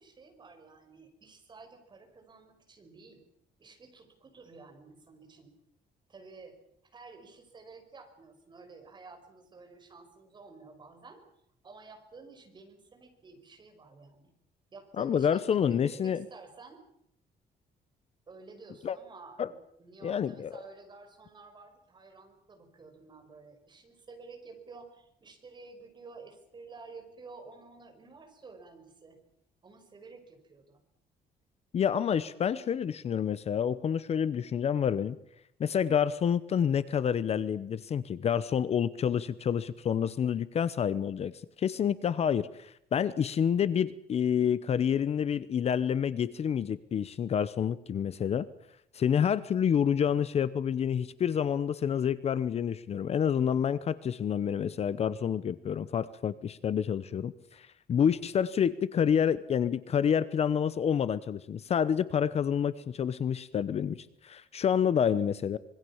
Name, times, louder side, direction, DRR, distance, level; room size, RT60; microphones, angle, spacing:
voice 1, 0.0-3.2 3.6-5.5 6.1-6.6 6.8-11.2 11.6-14.3 14.7-16.8 18.3-29.2 29.6-30.8, right 4 dB, 25° right, 5 dB, 5.4 m, -51 dB
voice 2, 15.0-16.2 18.8-19.0 19.4-19.5 20.0-20.5 31.7-35.2 35.6-48.5 48.9-65.6, left 8 dB, 40° left, 16 dB, 0.9 m, -28 dB
26.0 x 22.0 x 7.2 m, 0.73 s
cardioid pair, 180°, 16 cm